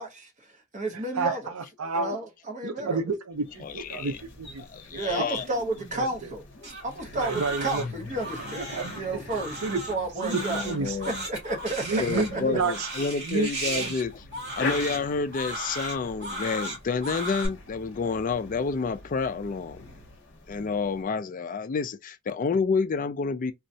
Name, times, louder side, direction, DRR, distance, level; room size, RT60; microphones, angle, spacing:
voice 1, 0.0-1.5 1.9-3.0 4.9-6.4 6.8-10.7 11.1-12.6, right 2 dB, 35° right, 0.7 m, -32 dB
voice 2, 1.2-2.2 2.6-4.6 4.9-5.0 6.0-6.3 7.1-7.8 8.6-9.0 9.6-9.8 10.2-11.0 11.8-12.9 13.2-13.9, right 4 dB, 75° right, 0.5 m, -30 dB
sound 1, 3.3-21.0, left 3 dB, 55° left, 0.8 m, -44 dB
voice 3, 3.6-4.2 4.6-5.4 7.8-7.9 10.2-11.2 12.0-14.2 14.6-19.8 20.5-23.5, left 4 dB, 35° left, 0.3 m, -29 dB
Crying sobbing, 6.6-17.5, right 1 dB, 50° right, 1.9 m, -36 dB
3.7 x 2.2 x 2.6 m
head